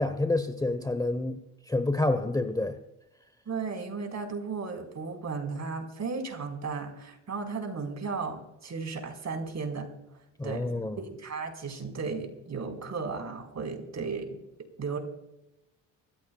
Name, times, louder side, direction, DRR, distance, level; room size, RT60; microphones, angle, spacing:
voice 1, 0.0-1.4 1.7-2.8 10.4-11.0, left 2 dB, 10° left, 10 dB, 1.0 m, -28 dB
voice 2, 3.5-9.9 10.4-14.4 14.8-15.0, right 4 dB, 45° right, 4 dB, 4.6 m, -35 dB
24.0 x 15.0 x 2.3 m, 0.92 s
supercardioid pair, 80°, 40 cm